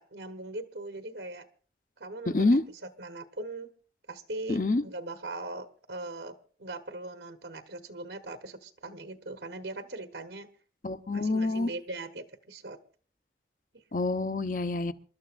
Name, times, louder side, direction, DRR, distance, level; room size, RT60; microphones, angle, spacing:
voice 1, 0.0-1.4 2.0-3.7 4.1-10.5 11.1-12.8, right 2 dB, 80° right, 8 dB, 1.1 m, -40 dB
voice 2, 4.5-4.8 10.8-11.7 13.9-14.9, left 2 dB, 50° left, 10 dB, 0.8 m, -26 dB
27.5 x 12.5 x 2.5 m, 0.41 s
head